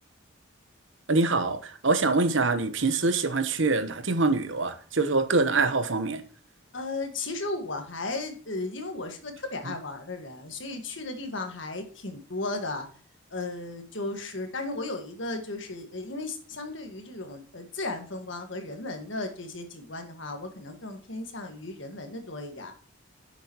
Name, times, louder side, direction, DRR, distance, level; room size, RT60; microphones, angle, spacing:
voice 1, 1.1-6.2, right 3 dB, 65° right, 1.0 m, -24 dB
voice 2, 6.7-12.9 13.3-22.7, left 2 dB, 65° left, 1.6 m, -35 dB
10.0 x 7.0 x 3.0 m
head